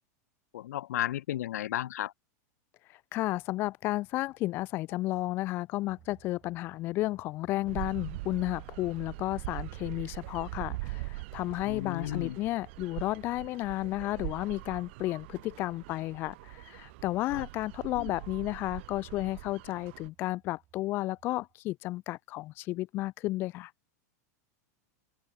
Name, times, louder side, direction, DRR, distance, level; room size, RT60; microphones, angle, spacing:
voice 1, 0.5-2.1 11.6-12.4 17.3-17.4 18.0-18.1, left 13 dB, 70° left, 1.8 m, -34 dB
voice 2, 2.9-23.7, left 17 dB, 25° left, 0.7 m, -33 dB
sound 1, 5.8-21.5, right 12 dB, 20° right, 6.9 m, -65 dB
sound 2, 7.7-20.1, right 22 dB, 45° right, 1.6 m, -42 dB
open air
supercardioid pair, 180°, 9 cm